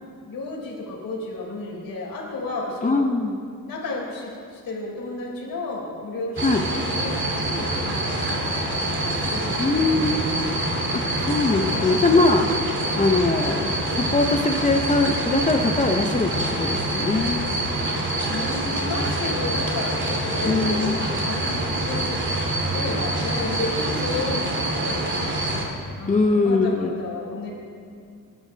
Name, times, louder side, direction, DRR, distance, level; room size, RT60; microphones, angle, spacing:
voice 1, 0.2-3.0 3.7-9.8 18.3-22.3 22.5-25.1 26.0-27.5, left 2 dB, 80° left, -3 dB, 4.1 m, -32 dB
voice 2, 2.8-3.4 6.4-6.6 9.6-10.2 10.5-10.6 10.9-12.5 12.9-17.5 20.4-21.1 26.1-26.9, left 3 dB, 20° left, 4 dB, 0.7 m, -22 dB
sound 1, 6.4-25.6, right 1 dB, 35° right, 2.5 m, -26 dB
27.0 x 12.5 x 3.4 m, 2.3 s
wide cardioid pair, 155°, 34 cm